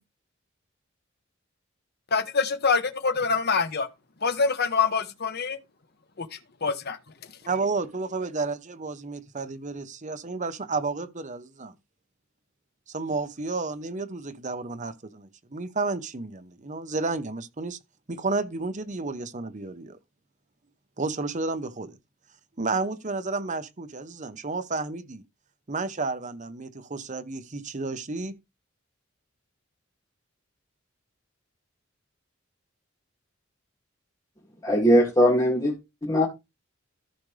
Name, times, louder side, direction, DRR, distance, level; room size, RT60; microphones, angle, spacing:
voice 1, 2.1-3.9 4.2-5.6 6.2-7.0, left 5 dB, 55° left, 1.1 m, -25 dB
voice 2, 7.5-11.7 12.9-17.8 18.1-20.0 21.0-21.9 22.6-25.2 25.7-28.3, right 3 dB, 40° right, 0.9 m, -31 dB
voice 3, 34.6-36.3, equal, 20° left, 2.3 m, -21 dB
14.5 x 5.0 x 3.3 m
head